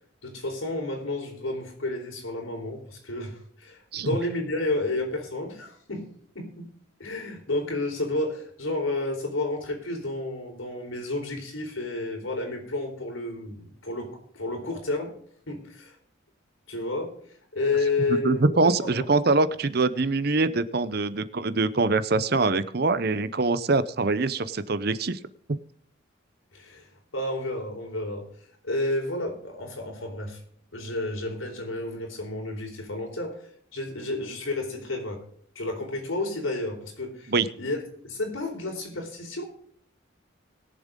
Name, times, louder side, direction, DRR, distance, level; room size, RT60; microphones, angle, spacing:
voice 1, 0.2-15.2 15.5-16.0 16.7-17.2 17.5-18.9 26.5-28.2 28.6-30.4 30.7-35.2 35.5-37.8 38.0-39.4, left 2 dB, 85° left, 2 dB, 4.1 m, -31 dB
voice 2, 18.2-25.2 37.3-37.5, right 3 dB, 50° right, 15 dB, 0.7 m, -24 dB
21.5 x 7.3 x 3.7 m, 0.63 s
head